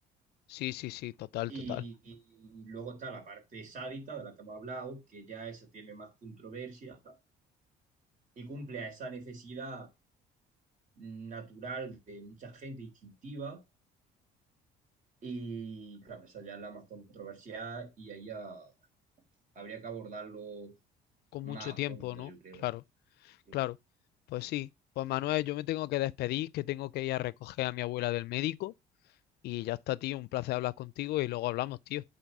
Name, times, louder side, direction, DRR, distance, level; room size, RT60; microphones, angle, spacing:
voice 1, 0.5-1.8 21.3-22.3 22.6-22.8 23.5-23.8 24.3-24.7 25.0-28.7 29.4-32.0, left 17 dB, 70° left, 0.4 m, -34 dB
voice 2, 1.5-7.2 8.4-9.9 11.0-13.6 15.2-18.7 19.6-20.7 21.4-22.6 23.5-23.6, right 4 dB, 50° right, 3.8 m, -43 dB
9.2 x 4.1 x 5.3 m
cardioid pair, 110°, 17 cm